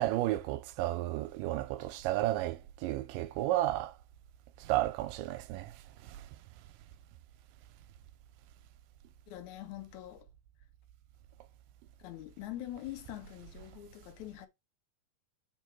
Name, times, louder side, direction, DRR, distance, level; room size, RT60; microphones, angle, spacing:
voice 1, 0.0-3.9 4.7-5.7, right 15 dB, 80° right, 2.1 m, -32 dB
voice 2, 9.3-10.3 12.0-14.5, left 14 dB, 75° left, 1.7 m, -44 dB
4.6 x 4.4 x 4.7 m
omnidirectional pair, 4.1 m